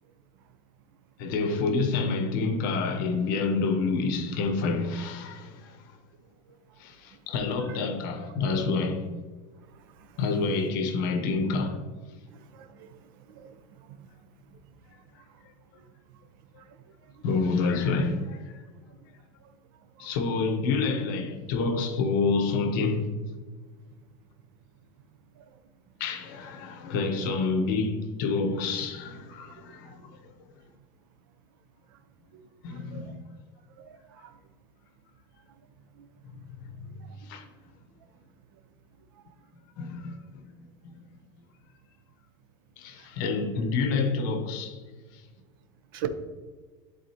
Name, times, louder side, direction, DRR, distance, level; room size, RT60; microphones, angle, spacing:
voice 1, 1.2-5.8 6.8-9.1 10.2-11.8 17.2-18.6 20.0-23.1 26.0-30.2 32.6-33.1 36.8-37.0 37.2-37.5 39.8-40.4 40.8-40.9 42.8-44.8, left 4 dB, 65° left, 1.0 m, -28 dB
voice 2, 12.5-13.0 13.3-13.5 13.9-14.0 20.0-20.1 29.9-30.0 32.3-32.4 32.9-33.0 34.1-34.3 45.9-46.1, right 12 dB, 80° right, 0.7 m, -38 dB
11.5 x 3.9 x 2.8 m
cardioid pair, 175°, 12 cm